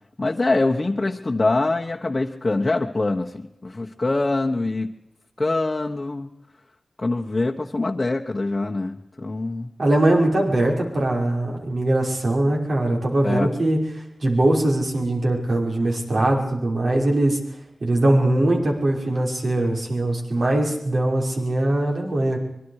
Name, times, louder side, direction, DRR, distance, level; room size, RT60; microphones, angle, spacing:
voice 1, 0.2-4.9 5.4-6.3 7.0-9.7 13.2-13.5, left 2 dB, 35° left, 0 dB, 1.3 m, -24 dB
voice 2, 9.8-13.8 14.2-17.4 17.8-22.4, right 1 dB, 60° right, 0 dB, 5.6 m, -21 dB
25.5 x 23.0 x 4.9 m, 0.79 s
wide cardioid pair, 90°, 0 cm